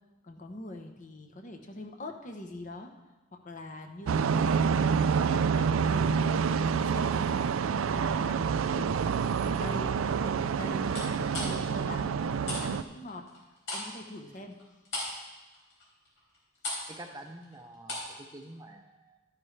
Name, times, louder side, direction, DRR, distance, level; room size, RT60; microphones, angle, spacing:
voice 1, 0.2-2.9 3.3-12.1 12.5-13.3 13.7-14.6, left 1 dB, 35° left, 4 dB, 0.9 m, -44 dB
sound 1, 4.1-12.8, right 6 dB, 75° right, 0.4 m, -27 dB
sound 2, 6.5-8.2 8.7-9.1 10.9-12.7 12.9-18.2 18.4-18.6, left 2 dB, 75° left, 4.1 m, -39 dB
voice 2, 16.9-19.2, right 1 dB, 15° right, 4 dB, 0.6 m, -47 dB
12.5 x 9.8 x 3.3 m, 1.1 s
head